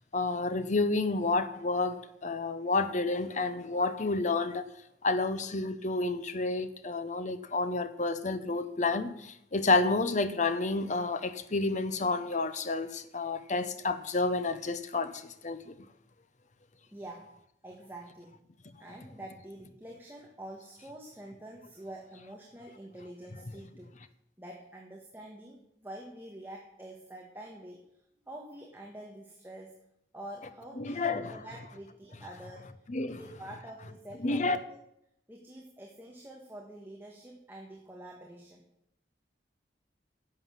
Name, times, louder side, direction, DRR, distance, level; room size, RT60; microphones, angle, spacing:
voice 1, 0.1-4.6 5.0-15.7 30.8-31.3 32.9-33.2 34.2-34.6, left 3 dB, 45° left, 0.9 m, -30 dB
voice 2, 16.9-17.3 17.6-18.4 18.8-24.0 24.4-27.8 28.3-29.8 30.1-32.7 33.1-34.8 35.3-38.6, right 1 dB, 10° right, 1.6 m, -47 dB
11.5 x 7.7 x 7.6 m
head